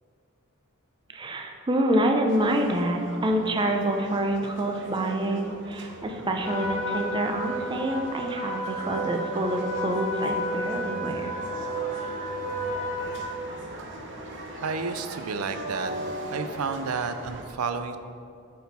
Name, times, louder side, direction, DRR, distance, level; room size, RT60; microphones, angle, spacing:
voice 1, 1.1-11.3, right 1 dB, 20° right, 3 dB, 0.5 m, -27 dB
sound 1, 2.3-17.4, right 1 dB, 60° right, 0.8 m, -40 dB
Trumpet, 6.4-13.3, right 1 dB, 70° left, 1.5 m, -32 dB
voice 2, 14.6-15.9 16.3-18.0, right 5 dB, 85° right, 9 dB, 0.5 m, -31 dB
8.1 x 4.3 x 4.1 m, 2.4 s
head